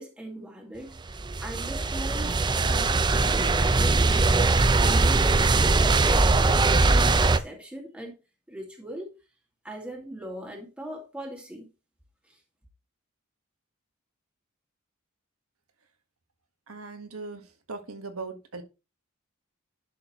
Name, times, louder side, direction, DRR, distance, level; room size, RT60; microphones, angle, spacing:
voice 1, 0.0-4.3 4.8-8.2 8.5-9.2 9.6-11.7 12.3-12.4, equal, 5° right, 2.2 m, -39 dB
sound 1, 1.0-7.4, right 3 dB, 20° right, 0.5 m, -21 dB
voice 2, 16.7-17.4 17.7-18.6, right 3 dB, 80° right, 1.6 m, -38 dB
11.0 x 6.4 x 3.1 m
head